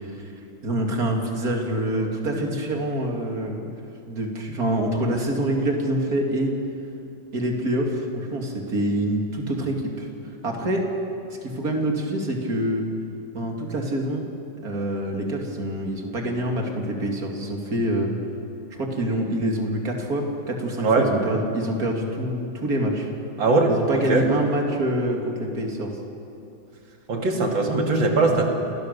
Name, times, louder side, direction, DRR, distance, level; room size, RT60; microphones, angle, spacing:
voice 1, 0.6-3.6 4.0-6.5 7.3-10.1 10.4-10.8 11.4-12.8 13.3-14.3 14.6-18.1 18.7-23.1 23.7-26.0 28.3-28.4, right 1 dB, 45° right, 1 dB, 3.0 m, -26 dB
voice 2, 23.4-24.3 27.1-28.5, right 3 dB, 70° right, 2 dB, 3.0 m, -20 dB
28.5 x 17.5 x 6.8 m, 2.7 s
omnidirectional pair, 2.2 m